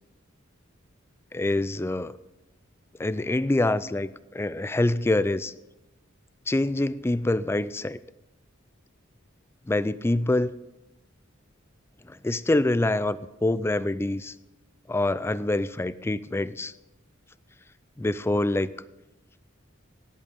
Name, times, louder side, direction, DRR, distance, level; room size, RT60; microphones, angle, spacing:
voice 1, 1.3-2.2 3.0-5.5 6.5-8.0 9.7-10.5 12.1-14.3 14.9-16.7 18.0-18.7, left 2 dB, 10° left, 16 dB, 0.3 m, -25 dB
17.5 x 8.3 x 5.3 m, 0.99 s
head